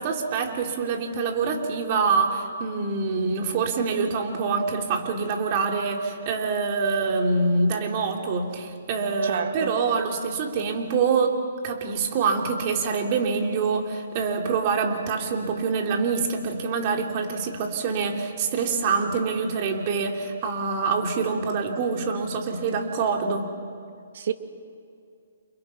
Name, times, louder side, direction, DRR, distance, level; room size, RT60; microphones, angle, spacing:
voice 1, 0.0-11.4 11.6-23.5, right 4 dB, 35° right, 2 dB, 3.1 m, -25 dB
voice 2, 9.2-9.7 24.1-24.3, right 7 dB, 60° right, 7 dB, 2.1 m, -29 dB
30.0 x 28.0 x 5.9 m, 2.3 s
hypercardioid pair, 155°, 0 cm